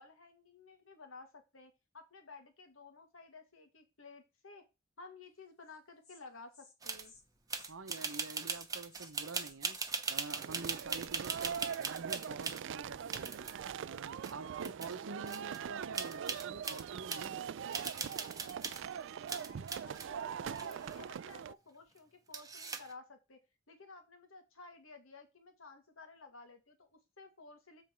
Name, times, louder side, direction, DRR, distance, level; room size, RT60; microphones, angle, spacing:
voice 1, 0.0-4.6 5.0-7.1 19.3-23.4 23.7-27.8, left 3 dB, 80° left, 1.7 m, -54 dB
Insect, 5.6-5.8 6.0-6.2 6.5-6.7 7.0-7.2 7.5-7.7 8.0-8.2 8.5-10.0, left 5 dB, 55° left, 1.8 m, -59 dB
sound 1, 6.8-7.1 7.5-12.6 13.1-13.7 14.2-14.3 14.6-15.0 15.3-15.6 15.9-17.3 17.7-18.9 19.3-20.1 20.5-21.3 22.3-22.9, right 4 dB, 20° right, 0.8 m, -40 dB
voice 2, 7.7-9.8 10.1-13.5 13.8-17.8, right 3 dB, 75° right, 0.8 m, -47 dB
sound 2, 10.3-21.5, right 8 dB, 60° right, 0.3 m, -42 dB
7.5 x 5.0 x 4.5 m
head